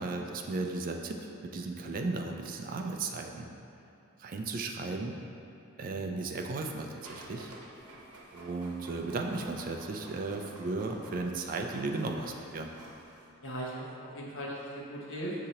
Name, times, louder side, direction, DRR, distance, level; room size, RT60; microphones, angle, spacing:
voice 1, 0.0-3.5 4.2-5.2 5.8-7.5 8.3-12.7, right 3 dB, 40° right, 3 dB, 0.3 m, -35 dB
Printer, 7.0-13.3, right 1 dB, 85° right, 0.8 m, -51 dB
voice 2, 13.4-15.5, right 1 dB, 60° left, -4 dB, 0.8 m, -38 dB
6.2 x 2.8 x 2.8 m, 2.8 s
head